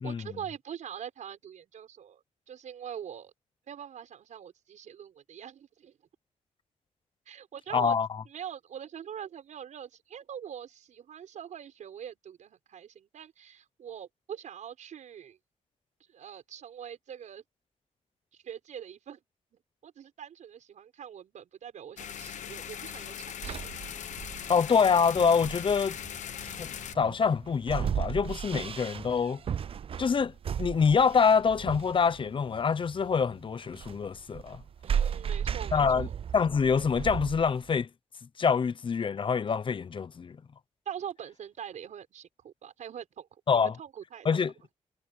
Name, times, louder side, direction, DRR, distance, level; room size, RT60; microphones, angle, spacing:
voice 1, 0.0-3.3 3.7-6.0 7.3-8.0 8.3-15.4 16.1-17.4 18.3-19.2 19.8-23.7 34.8-36.2 40.8-43.3 43.5-44.5, right 9 dB, 85° right, 6.3 m, -43 dB
voice 2, 7.7-8.1 24.5-26.0 26.4-29.4 30.0-30.3 30.6-34.6 35.7-36.1 36.3-37.9 38.4-40.4 43.5-43.7 44.2-44.5, left 6 dB, 45° left, 0.7 m, -25 dB
sound 1, 22.0-27.0, left 9 dB, 90° left, 1.2 m, -40 dB
sound 2, 23.4-37.8, right 8 dB, 50° right, 0.4 m, -36 dB
wide cardioid pair, 110°, 12 cm